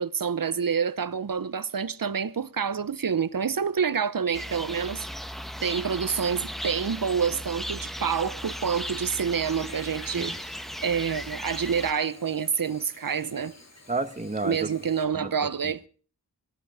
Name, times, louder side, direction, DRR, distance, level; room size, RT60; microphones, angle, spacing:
voice 1, 0.0-5.1 5.6-10.3 10.8-13.5 14.4-15.8, right 6 dB, 55° right, 0.9 m, -27 dB
sound 1, 4.3-11.9, equal, ahead, 1.1 m, -37 dB
Chirp tweet / Buzz, 8.4-15.1, left 2 dB, 40° left, 3.2 m, -51 dB
voice 2, 13.9-14.6 15.1-15.9, right 3 dB, 20° right, 1.4 m, -32 dB
17.0 x 13.5 x 4.9 m
wide cardioid pair, 60°, 40 cm